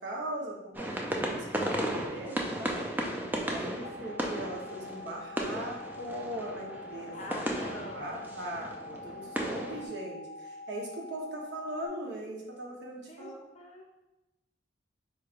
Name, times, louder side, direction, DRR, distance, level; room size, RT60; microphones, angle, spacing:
voice 1, 0.0-2.9 3.4-7.7 7.9-13.4, right 1 dB, 60° right, -2 dB, 0.9 m, -40 dB
sound 1, 0.7-9.9, right 1 dB, 10° right, 0.4 m, -35 dB
voice 2, 0.9-1.5 7.1-8.2 8.5-9.4 9.8-10.0 13.1-13.8, left 1 dB, 35° left, 1 dB, 0.6 m, -47 dB
sound 2, 3.8-11.9, left 2 dB, 90° left, 0.3 m, -45 dB
4.6 x 3.2 x 2.4 m, 0.98 s
head